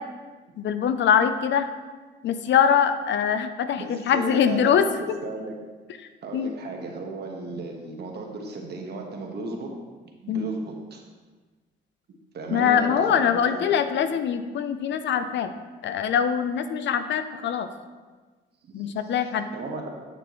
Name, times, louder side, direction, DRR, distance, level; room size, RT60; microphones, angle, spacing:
voice 1, 0.6-1.7 2.2-4.9 6.3-6.5 10.3-10.5 12.5-15.5 15.8-17.7 18.7-19.4, left 8 dB, 65° left, 10 dB, 0.6 m, -23 dB
voice 2, 3.8-5.6 6.2-9.7 10.2-11.0 12.3-13.7 18.6-18.9 19.5-19.9, right 3 dB, 55° right, 1 dB, 1.5 m, -35 dB
8.6 x 6.9 x 3.1 m, 1.3 s
cardioid pair, 90°, 20 cm